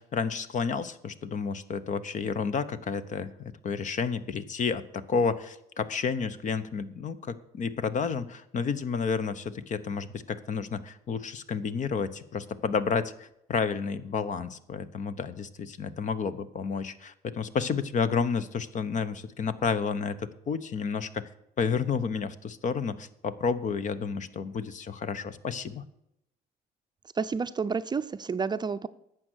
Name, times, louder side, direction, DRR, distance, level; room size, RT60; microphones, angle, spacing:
voice 1, 0.0-21.3 21.6-25.8, left 5 dB, 45° left, 14 dB, 1.0 m, -31 dB
voice 2, 27.1-28.9, right 5 dB, 25° right, 10 dB, 0.6 m, -30 dB
12.0 x 7.8 x 6.3 m, 0.81 s
cardioid pair, 110°, 17 cm